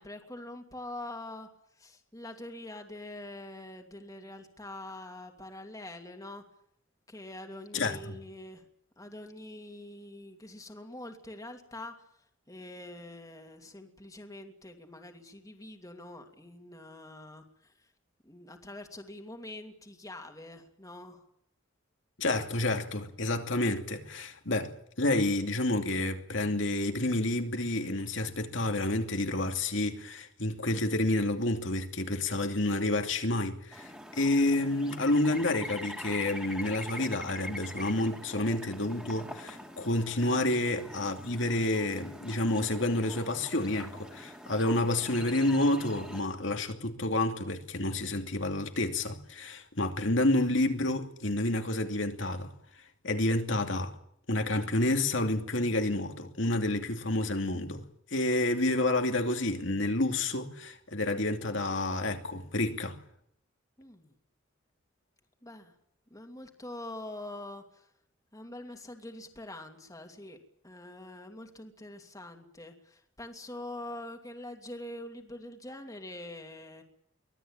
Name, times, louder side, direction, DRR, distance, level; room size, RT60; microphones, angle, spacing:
voice 1, 0.0-1.5 1.8-6.4 7.1-8.6 9.0-12.0 12.5-17.9 18.2-21.2 38.2-38.3 40.4-40.6 63.8-64.1 65.4-65.7 66.1-67.9 68.3-70.4 70.6-76.8, left 1 dB, 20° left, 2.6 m, -44 dB
voice 2, 7.7-8.1 22.2-52.5 53.0-53.9 54.3-57.8 58.1-63.0, left 2 dB, 70° left, 2.7 m, -29 dB
sound 1, 33.7-46.2, equal, 5° right, 2.8 m, -44 dB
24.5 x 17.5 x 8.9 m
head